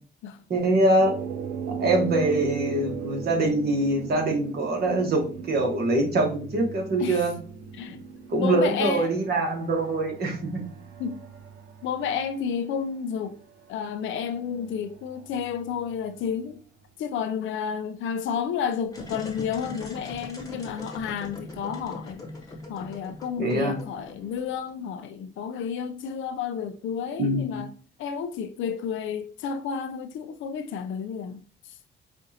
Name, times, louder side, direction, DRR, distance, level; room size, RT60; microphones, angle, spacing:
voice 1, 0.5-1.1 1.7-7.3 8.3-10.6 23.4-23.8 27.2-27.6, right 2 dB, 55° right, 1.4 m, -24 dB
sound 1, 1.0-16.5, right 6 dB, 80° right, 0.7 m, -39 dB
voice 2, 8.4-9.1 11.0-11.2 11.8-13.4 13.7-16.6 17.0-22.2 22.7-27.7 28.0-31.4, left 7 dB, 80° left, 0.5 m, -31 dB
sound 2, 18.9-24.7, left 2 dB, 20° left, 1.1 m, -41 dB
5.1 x 2.5 x 2.8 m
cardioid pair, 90°, 20 cm